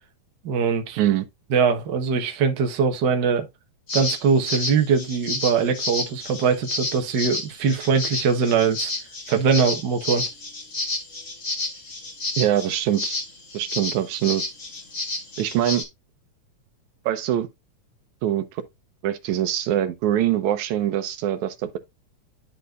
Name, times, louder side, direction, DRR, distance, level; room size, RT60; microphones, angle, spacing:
voice 1, 0.4-1.0 1.5-3.5 3.9-8.9 9.3-10.2, right 6 dB, 50° right, 1.5 m, -22 dB
sound 1, 3.9-15.8, left 2 dB, 30° left, 1.8 m, -30 dB
voice 2, 12.4-13.2 13.5-14.4 15.4-15.8 17.1-17.5 18.2-18.6 19.0-21.8, right 12 dB, 80° right, 2.1 m, -23 dB
11.0 x 4.3 x 2.5 m
omnidirectional pair, 3.3 m